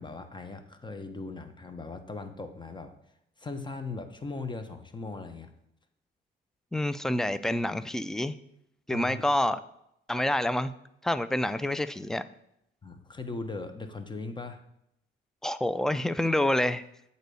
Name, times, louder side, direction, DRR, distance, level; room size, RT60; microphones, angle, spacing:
voice 1, 0.0-2.9 3.4-5.5 8.9-9.2 12.8-14.6, left 3 dB, 25° left, 8 dB, 1.0 m, -39 dB
voice 2, 6.7-8.4 8.9-9.6 10.1-10.7 11.0-12.2 15.4-16.8, left 1 dB, ahead, 13 dB, 0.4 m, -27 dB
8.1 x 4.1 x 6.8 m, 0.78 s
cardioid pair, 90°, 20 cm